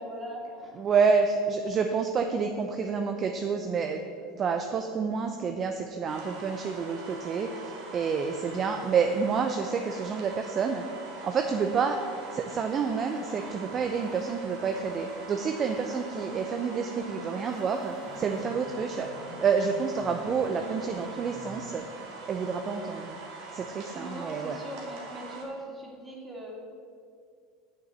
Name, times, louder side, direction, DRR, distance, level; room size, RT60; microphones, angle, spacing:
voice 1, 0.0-0.9 23.9-26.6, equal, 20° right, -2 dB, 2.7 m, -40 dB
voice 2, 0.8-4.0 4.4-10.8 11.2-12.0 12.3-19.1 19.4-21.8 22.3-23.2 23.5-24.6, right 5 dB, 35° right, 5 dB, 0.7 m, -28 dB
sound 1, 6.1-25.4, right 3 dB, 60° right, 2.4 m, -43 dB
sound 2, 12.5-21.8, left 2 dB, 40° left, 2.2 m, -48 dB
6.7 x 6.7 x 7.5 m, 2.3 s
hypercardioid pair, 85°, 0 cm